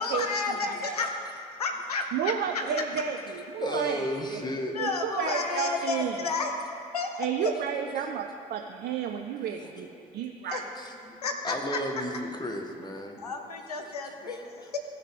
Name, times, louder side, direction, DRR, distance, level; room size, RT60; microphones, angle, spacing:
voice 1, 0.0-2.6 4.7-7.3 10.5-10.6 11.2-11.8 13.2-14.8, left 4 dB, 90° left, 4 dB, 0.6 m, -32 dB
voice 2, 2.1-4.4 4.8-6.3 7.2-10.6, right 8 dB, 60° right, 4 dB, 0.5 m, -32 dB
voice 3, 3.6-4.7 5.8-5.9 7.9-8.0 9.5-10.2 10.7-13.2 14.3-14.5, left 1 dB, 20° left, 3 dB, 1.4 m, -35 dB
15.0 x 6.4 x 3.5 m, 2.7 s
figure-of-eight pair, 45°, 19 cm